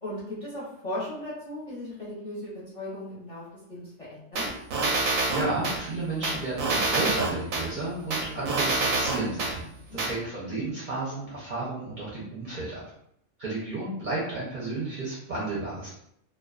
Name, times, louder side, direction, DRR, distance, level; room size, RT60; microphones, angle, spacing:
voice 1, 0.0-4.5 9.8-10.0, left 1 dB, 35° left, -9 dB, 0.7 m, -37 dB
sound 1, 4.4-5.8 6.2-7.6 8.1-9.5 10.0-10.1, right 3 dB, 85° right, 1.0 m, -26 dB
voice 2, 5.0-9.6 9.9-12.8 13.4-15.9, right 2 dB, 45° right, -8 dB, 0.7 m, -32 dB
2.3 x 2.3 x 2.3 m, 0.74 s
omnidirectional pair, 1.3 m